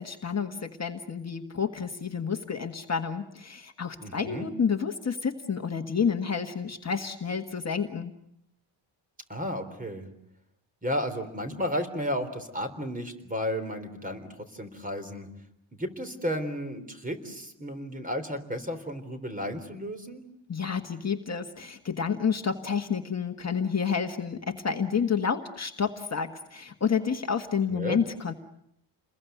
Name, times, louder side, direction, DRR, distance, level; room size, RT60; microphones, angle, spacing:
voice 1, 0.0-8.1 20.5-28.3, left 6 dB, 35° left, 5 dB, 1.6 m, -29 dB
voice 2, 4.0-4.5 9.3-10.1 10.8-15.3 15.8-20.2 27.7-28.0, equal, 15° right, 7 dB, 3.7 m, -33 dB
29.5 x 21.5 x 9.3 m, 0.77 s
wide cardioid pair, 140°, 47 cm